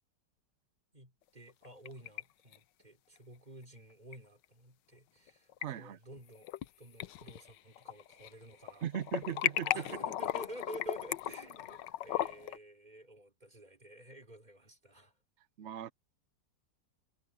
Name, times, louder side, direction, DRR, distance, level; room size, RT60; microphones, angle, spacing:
voice 1, 0.9-6.5 6.8-8.9 9.7-15.1, right 1 dB, 25° right, 3.9 m, -51 dB
sound 1, 1.5-2.2 2.5-2.6 4.1-4.2 5.3-5.7 6.2-6.7 7.0-8.3 8.6-12.6, left 13 dB, 80° left, 1.3 m, -36 dB
voice 2, 5.6-6.0 8.8-9.9 15.6-15.9, right 9 dB, 70° right, 0.6 m, -38 dB
omnidirectional pair, 1.9 m